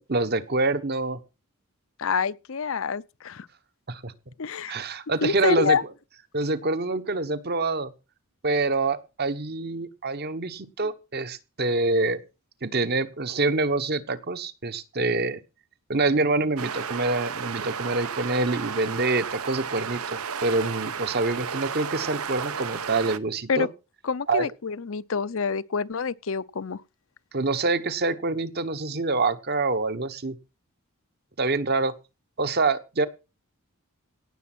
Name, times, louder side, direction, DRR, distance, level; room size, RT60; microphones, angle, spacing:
voice 1, 0.1-1.2 3.9-4.1 4.7-5.8 6.3-7.9 8.4-12.2 12.6-15.4 15.9-23.7 24.3-24.5 27.3-30.4 31.4-31.9 32.4-33.1, right 3 dB, 45° right, 1.2 m, -26 dB
voice 2, 2.0-3.5 4.4-4.8 5.2-5.8 23.5-23.7 24.0-26.8, left 5 dB, 60° left, 0.6 m, -27 dB
sound 1, 16.6-23.2, right 6 dB, 75° right, 1.0 m, -33 dB
17.5 x 7.1 x 6.1 m
head